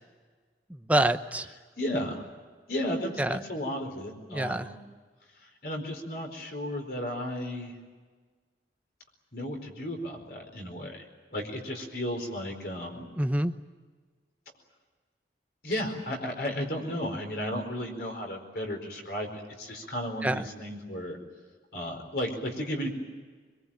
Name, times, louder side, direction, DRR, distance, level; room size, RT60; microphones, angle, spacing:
voice 1, 0.7-1.5 3.2-3.4 4.3-4.7 13.2-13.5 20.2-20.5, right 1 dB, 10° right, 9 dB, 0.8 m, -26 dB
voice 2, 1.8-2.2 2.7-4.7 5.4-7.7 9.3-11.1 11.3-13.1 15.6-21.2 21.7-22.9, equal, 55° left, 3 dB, 4.6 m, -34 dB
24.0 x 22.5 x 8.9 m, 1.4 s
head